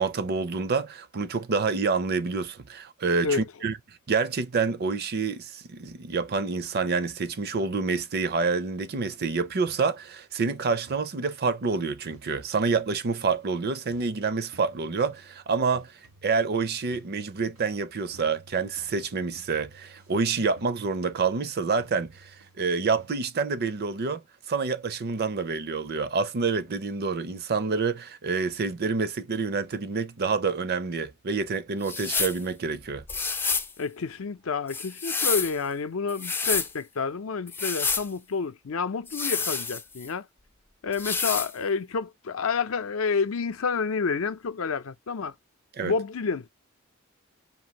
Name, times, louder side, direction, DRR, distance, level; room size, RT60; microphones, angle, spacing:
voice 1, 0.0-3.8 4.1-15.9 16.2-24.2 24.5-33.0 45.8-45.9, right 4 dB, 45° right, 0.5 m, -27 dB
sound 1, 9.6-10.3 10.9-11.5 12.1-12.9 13.3-23.1, right 1 dB, 90° right, 1.9 m, -56 dB
sound 2, 31.8-32.4 33.1-33.7 34.7-35.6 36.1-36.7 37.5-38.1 39.1-40.1 40.9-41.5, left 5 dB, 10° left, 0.3 m, -28 dB
voice 2, 33.8-40.3 40.8-45.3 45.8-46.5, left 5 dB, 70° left, 0.6 m, -29 dB
5.3 x 2.6 x 2.8 m
head